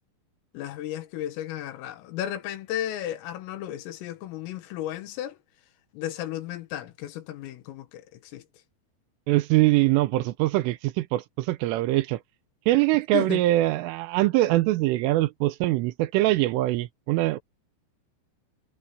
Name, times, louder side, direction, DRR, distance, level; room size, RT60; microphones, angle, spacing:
voice 1, 0.5-5.4 5.9-8.4 13.1-13.4, left 12 dB, 85° left, 4.2 m, -34 dB
voice 2, 9.3-12.2 12.7-17.4, right 17 dB, 80° right, 3.3 m, -23 dB
omnidirectional pair, 5.9 m